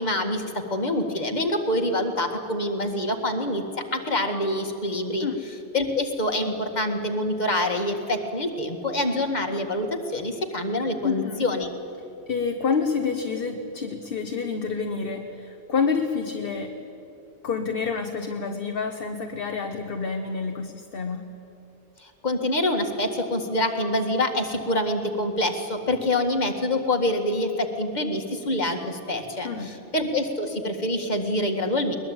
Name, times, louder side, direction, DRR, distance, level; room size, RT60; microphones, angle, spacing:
voice 1, 0.0-3.6 3.9-5.3 5.7-11.7 22.0-32.0, left 1 dB, 40° left, 4 dB, 2.0 m, -26 dB
voice 2, 11.0-11.5 12.3-16.8 17.4-21.3 29.4-29.8, left 5 dB, 55° left, 5 dB, 1.3 m, -28 dB
21.5 x 21.0 x 8.8 m, 3.0 s
omnidirectional pair, 1.1 m